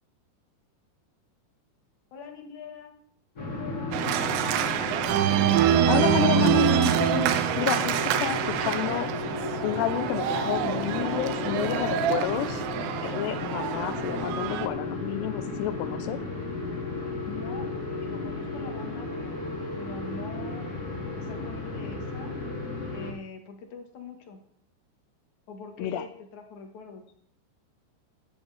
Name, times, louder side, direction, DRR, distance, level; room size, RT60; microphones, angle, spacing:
voice 1, 2.1-2.9 3.4-4.9 17.3-17.7 18.0-19.5 19.8-20.7 21.2-22.4 22.9-24.4 25.5-27.0, left 5 dB, 55° left, 4 dB, 2.4 m, -43 dB
sound 1, 3.4-23.1, left 3 dB, 25° left, 2.3 m, -34 dB
Organ, 3.9-14.7, right 10 dB, 85° right, 3.1 m, -26 dB
voice 2, 5.8-9.1 9.6-12.6 13.0-16.2 25.8-26.0, left 12 dB, 80° left, 11 dB, 2.9 m, -30 dB
15.5 x 11.0 x 3.5 m, 0.64 s
omnidirectional pair, 5.1 m